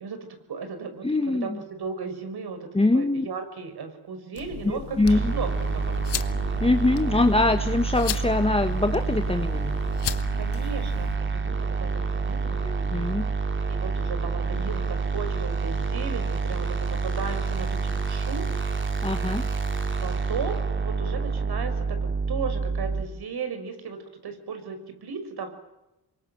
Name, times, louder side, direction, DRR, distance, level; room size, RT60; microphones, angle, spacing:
voice 1, 0.0-1.5 1.8-6.2 10.4-12.6 13.7-18.9 20.0-25.5, right 5 dB, 70° right, 8 dB, 6.0 m, -36 dB
voice 2, 1.0-1.6 2.7-3.2 4.6-5.3 6.6-9.8 12.6-13.2 19.0-19.5, left 2 dB, 15° left, 7 dB, 1.4 m, -23 dB
sound 1, 4.3-11.2, left 9 dB, 90° left, 1.4 m, -36 dB
sound 2, 5.0-23.0, right 4 dB, 30° right, 3.4 m, -28 dB
28.0 x 23.5 x 7.8 m, 0.93 s
cardioid pair, 95°, 40 cm